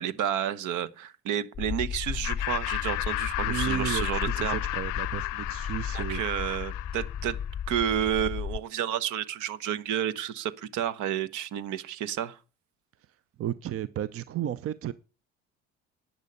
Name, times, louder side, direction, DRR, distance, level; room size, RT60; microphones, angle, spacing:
voice 1, 0.0-4.6 5.9-7.4 7.7-12.4, right 10 dB, 65° right, 1.1 m, -31 dB
sound 1, 1.5-8.6, left 8 dB, 25° left, 0.6 m, -34 dB
Laughter, 2.2-7.5, left 22 dB, 65° left, 0.6 m, -33 dB
voice 2, 3.4-6.5 13.4-14.9, right 11 dB, 45° right, 0.7 m, -33 dB
10.5 x 10.0 x 5.4 m
hypercardioid pair, 60°, 33 cm